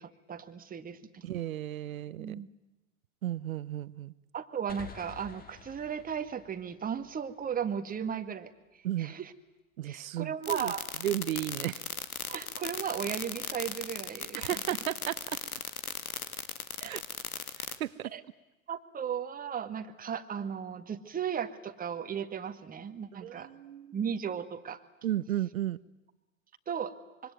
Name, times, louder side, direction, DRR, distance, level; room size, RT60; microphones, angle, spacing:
voice 1, 0.0-1.2 2.2-2.5 4.3-9.3 9.9-10.8 12.3-14.8 16.8-17.0 18.0-18.2 18.7-23.5 23.9-24.8 26.7-26.9, right 8 dB, 20° right, 9 dB, 1.9 m, -36 dB
voice 2, 1.2-2.4 3.2-4.1 8.8-9.1 9.8-10.7 11.0-11.8 14.3-15.4 16.8-17.0 17.8-18.1 23.2-24.0 25.0-25.8, right 13 dB, 70° right, 18 dB, 1.1 m, -34 dB
sound 1, 4.7-8.2, left 6 dB, 20° left, 2.6 m, -51 dB
sound 2, 10.4-17.8, left 6 dB, 90° left, 2.0 m, -36 dB
25.5 x 23.5 x 9.4 m, 1.1 s
hypercardioid pair, 100°, 42 cm